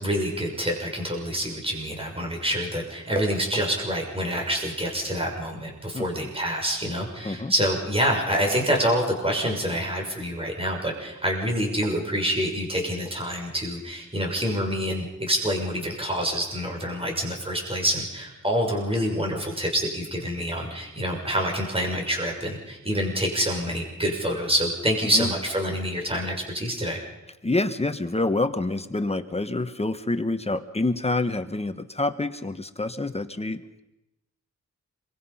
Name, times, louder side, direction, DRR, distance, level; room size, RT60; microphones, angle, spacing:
voice 1, 0.0-27.0, equal, 15° right, 1 dB, 6.1 m, -27 dB
voice 2, 5.9-6.3 7.2-7.5 25.1-25.3 27.4-33.8, left 2 dB, 20° left, 9 dB, 1.2 m, -27 dB
27.0 x 23.5 x 5.7 m, 0.96 s
wide cardioid pair, 130°, 32 cm